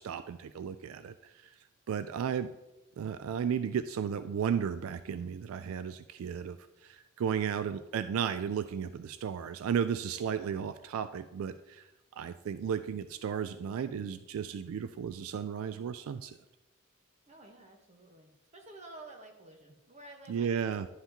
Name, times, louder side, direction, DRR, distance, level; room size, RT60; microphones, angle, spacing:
voice 1, 0.0-1.5 1.9-2.5 3.0-11.9 12.2-16.4 20.3-20.9, right 7 dB, 75° right, 12 dB, 0.3 m, -34 dB
voice 2, 17.3-20.8, right 2 dB, 35° right, 2 dB, 1.2 m, -52 dB
11.0 x 5.6 x 2.9 m, 1.0 s
head